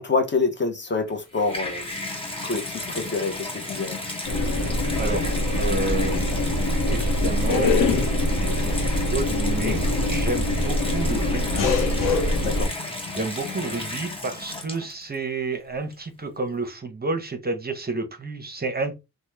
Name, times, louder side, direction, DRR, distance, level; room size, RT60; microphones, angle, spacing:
voice 1, 0.0-1.8 2.4-4.0 9.6-9.9 12.4-12.8, left 4 dB, 30° left, 0.7 m, -27 dB
Water tap faucet / Bathtub (filling or washing), 1.1-15.1 15.9-16.0, left 2 dB, 15° left, 1.1 m, -33 dB
sound 1, 4.3-12.7, left 1 dB, 55° left, 0.9 m, -23 dB
voice 2, 5.0-6.3 6.9-11.7 13.1-18.9, right 3 dB, 25° right, 0.7 m, -30 dB
2.9 x 2.1 x 3.2 m
cardioid pair, 90°, 38 cm